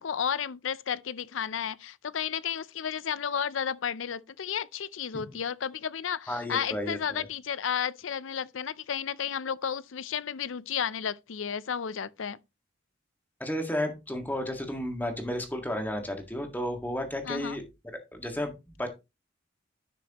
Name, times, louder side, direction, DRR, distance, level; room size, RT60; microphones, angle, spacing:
voice 1, 0.0-12.4 17.2-17.6, left 8 dB, 75° left, 0.5 m, -32 dB
voice 2, 6.3-7.2 13.4-17.6 18.1-18.9, left 1 dB, 10° left, 1.7 m, -32 dB
10.5 x 6.3 x 3.0 m
head